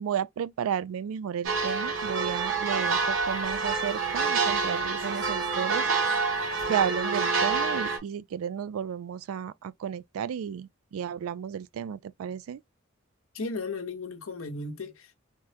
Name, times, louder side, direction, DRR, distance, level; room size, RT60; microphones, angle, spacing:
voice 1, 0.0-5.9 6.7-12.6, right 8 dB, 80° right, 0.3 m, -33 dB
sound 1, 1.5-8.0, right 4 dB, 65° right, 0.9 m, -27 dB
voice 2, 13.3-15.1, left 3 dB, 80° left, 0.8 m, -35 dB
3.5 x 2.1 x 2.7 m
head